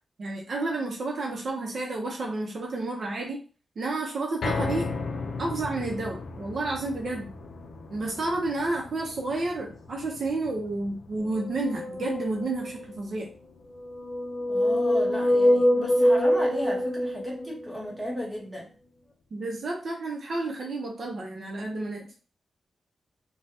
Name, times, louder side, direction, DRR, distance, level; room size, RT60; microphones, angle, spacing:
voice 1, 0.2-3.4 3.8-4.9 5.4-7.3 7.9-13.3 19.3-22.1, right 2 dB, 55° right, 0 dB, 0.6 m, -31 dB
sound 1, 4.4-16.7 17.1-17.2 17.6-17.7, left 4 dB, 80° left, 0.4 m, -38 dB
sound 2, 11.4-13.0 13.8-17.7, equal, 30° left, 0.5 m, -24 dB
voice 2, 14.5-18.7, left 1 dB, 5° right, -3 dB, 1.0 m, -34 dB
3.3 x 2.2 x 2.7 m, 0.36 s
wide cardioid pair, 150°, 0 cm